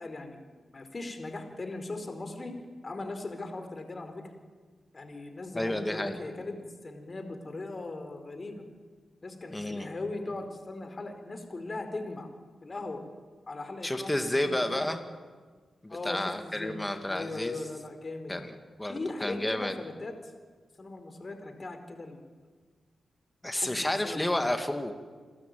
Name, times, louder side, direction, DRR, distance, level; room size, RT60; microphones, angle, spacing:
voice 1, 0.0-2.5 2.8-4.3 4.9-8.6 9.2-12.3 12.6-13.0 13.5-14.8 15.9-18.3 18.9-20.3 20.8-22.2 23.5-24.5, left 2 dB, 45° left, 7 dB, 4.4 m, -39 dB
voice 2, 5.5-6.2 9.5-9.9 13.8-15.0 15.8-17.6 18.3-19.8 23.4-24.9, left 1 dB, 15° left, 6 dB, 2.3 m, -31 dB
28.5 x 12.5 x 9.3 m, 1.5 s
supercardioid pair, 45°, 0 cm